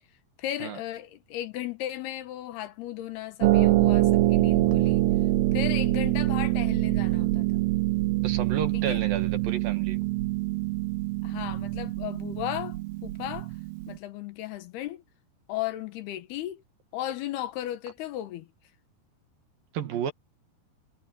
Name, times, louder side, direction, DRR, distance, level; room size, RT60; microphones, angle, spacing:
voice 1, 0.4-5.0 5.5-7.6 8.7-9.0 11.2-13.5 13.9-15.0 15.5-16.6 16.9-18.5, left 13 dB, 75° left, 3.2 m, -35 dB
Harp, 3.4-14.0, right 17 dB, 85° right, 3.0 m, -25 dB
voice 2, 8.2-10.0 19.7-20.1, right 8 dB, 65° right, 3.2 m, -32 dB
omnidirectional pair, 4.7 m